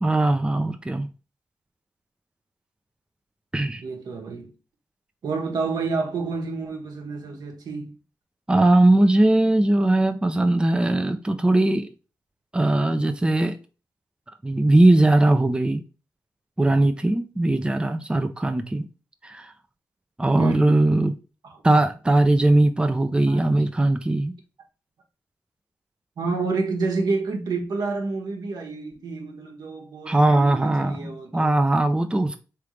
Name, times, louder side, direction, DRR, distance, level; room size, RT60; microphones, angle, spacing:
voice 1, 0.0-1.1 3.5-3.8 8.5-11.9 12.5-13.6 14.4-15.8 16.6-18.9 19.2-19.5 20.2-21.1 21.6-24.3 30.1-32.4, right 2 dB, 15° right, 0.6 m, -20 dB
voice 2, 3.8-4.5 5.2-8.0 20.4-20.8 21.5-21.6 23.3-23.5 26.2-31.5, right 4 dB, 75° right, 1.2 m, -29 dB
3.6 x 3.4 x 3.1 m
cardioid pair, 50°, 7 cm